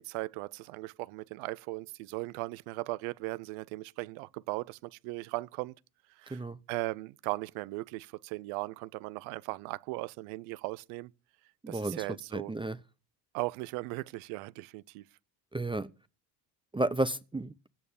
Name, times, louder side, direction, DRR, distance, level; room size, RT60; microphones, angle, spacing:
voice 1, 0.0-5.7 6.2-6.4 6.7-11.1 11.7-12.5 13.3-15.0, right 21 dB, 75° right, 0.7 m, -38 dB
voice 2, 11.6-12.0 12.3-12.8 15.5-15.9 16.7-17.5, right 2 dB, 10° right, 0.6 m, -32 dB
16.5 x 8.4 x 7.0 m
hypercardioid pair, 65°, 50 cm